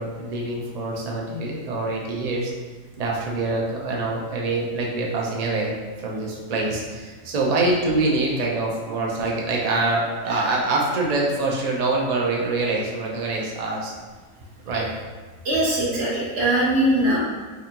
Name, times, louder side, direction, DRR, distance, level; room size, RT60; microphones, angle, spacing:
voice 1, 0.0-2.5 3.0-13.9 14.6-14.9, right 2 dB, 85° right, -2 dB, 0.3 m, -25 dB
voice 2, 15.4-17.2, right 1 dB, 50° right, -5 dB, 1.2 m, -22 dB
3.7 x 3.4 x 2.9 m, 1.4 s
omnidirectional pair, 1.5 m